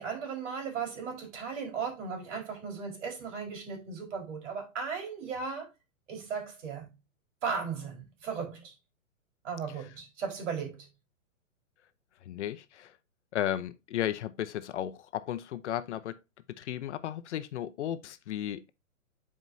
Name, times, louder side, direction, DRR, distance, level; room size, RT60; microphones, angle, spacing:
voice 1, 0.0-5.7 6.1-6.9 7.4-8.7 9.4-10.9, right 6 dB, 60° right, 4.3 m, -36 dB
voice 2, 12.2-12.9 13.3-16.2 16.6-18.7, left 11 dB, 55° left, 0.8 m, -34 dB
9.3 x 4.9 x 2.7 m
hypercardioid pair, 145°, 41 cm